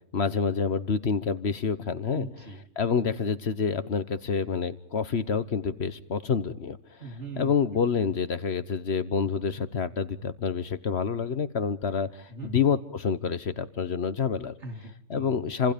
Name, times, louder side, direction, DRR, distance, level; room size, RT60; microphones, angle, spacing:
voice 1, 0.1-2.3 2.8-7.0 7.4-14.5 15.1-15.7, left 6 dB, 60° left, 13 dB, 1.4 m, -28 dB
voice 2, 2.1-2.6 7.0-7.5 12.3-12.6 14.6-15.5, right 3 dB, 65° right, 4 dB, 3.9 m, -40 dB
30.0 x 26.0 x 5.2 m, 0.71 s
omnidirectional pair, 1.3 m